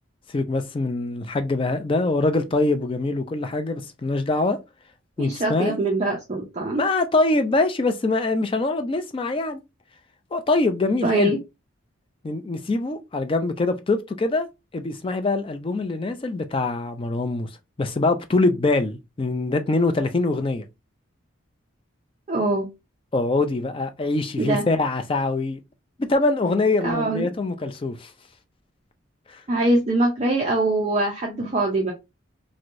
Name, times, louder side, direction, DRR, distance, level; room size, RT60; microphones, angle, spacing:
voice 1, 0.3-4.6 5.2-5.8 6.7-9.6 10.3-11.3 12.2-14.5 14.7-17.5 17.8-20.6 23.1-25.6 26.0-28.1 29.3-29.4, left 2 dB, 25° left, 0.3 m, -23 dB
voice 2, 5.2-6.8 11.0-11.4 22.3-22.7 24.4-24.6 26.8-27.3 29.5-31.9, right 2 dB, 30° right, 0.5 m, -23 dB
3.1 x 2.6 x 2.5 m
head